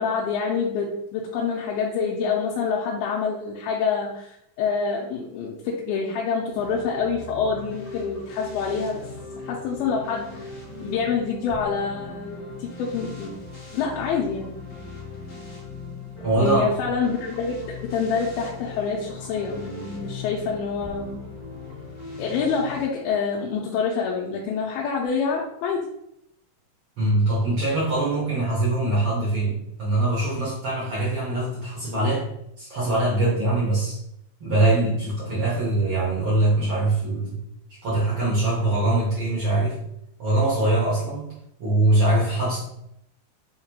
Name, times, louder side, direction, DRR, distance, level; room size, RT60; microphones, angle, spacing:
voice 1, 0.0-9.0 9.4-10.5 10.8-13.4 13.7-14.7 16.4-21.2 22.2-25.9, left 5 dB, 85° left, -3 dB, 2.4 m, -26 dB
sound 1, 6.5-22.8, left 4 dB, 65° left, 0.8 m, -39 dB
voice 2, 16.2-16.7 27.0-32.2 32.6-34.0 34.4-37.4 37.8-39.8 40.2-41.3 41.6-42.6, right 2 dB, 75° right, -8 dB, 1.2 m, -22 dB
6.3 x 2.2 x 2.9 m, 0.76 s
omnidirectional pair, 4.2 m